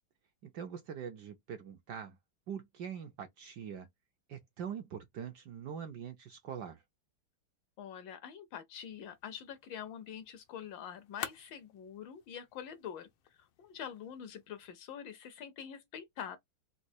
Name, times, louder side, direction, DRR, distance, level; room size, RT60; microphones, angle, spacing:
voice 1, 0.4-2.2 2.5-3.9 4.3-6.8, right 8 dB, 75° right, 1.0 m, -43 dB
voice 2, 7.8-13.1 13.6-16.4, left 8 dB, 75° left, 1.1 m, -45 dB
sound 1, 8.8-14.8, left 11 dB, 90° left, 1.5 m, -50 dB
4.1 x 2.2 x 2.7 m
omnidirectional pair, 2.3 m